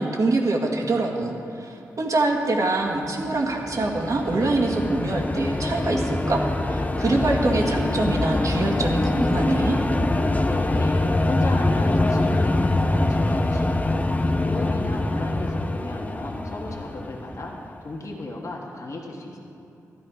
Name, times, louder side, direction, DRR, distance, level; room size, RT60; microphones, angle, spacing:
voice 1, 0.0-9.8, right 2 dB, 55° right, 1 dB, 2.0 m, -25 dB
sound 1, 3.3-17.8, left 2 dB, 20° left, 0.8 m, -24 dB
voice 2, 10.4-19.4, left 2 dB, 50° left, -2 dB, 1.6 m, -35 dB
12.5 x 11.0 x 5.0 m, 2.7 s
supercardioid pair, 45°, 7 cm